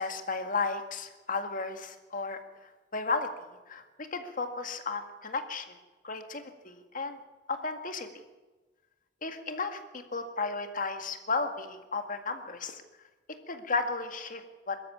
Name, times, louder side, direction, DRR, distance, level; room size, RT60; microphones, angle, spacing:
voice 1, 0.0-2.4 2.9-3.3 3.7-5.8 6.0-7.2 7.5-8.1 9.2-12.8 13.5-14.8, left 4 dB, 50° left, 6 dB, 2.0 m, -34 dB
23.0 x 13.5 x 8.6 m, 1.2 s
head